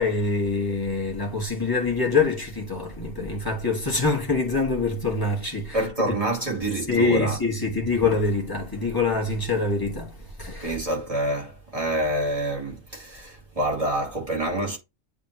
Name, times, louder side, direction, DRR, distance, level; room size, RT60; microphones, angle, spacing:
voice 1, 0.0-6.1 6.9-10.1 10.4-10.8, left 3 dB, 15° left, 1.5 m, -25 dB
voice 2, 5.7-7.4 10.6-14.8, right 1 dB, 25° right, 2.4 m, -27 dB
9.5 x 3.5 x 2.9 m
omnidirectional pair, 1.6 m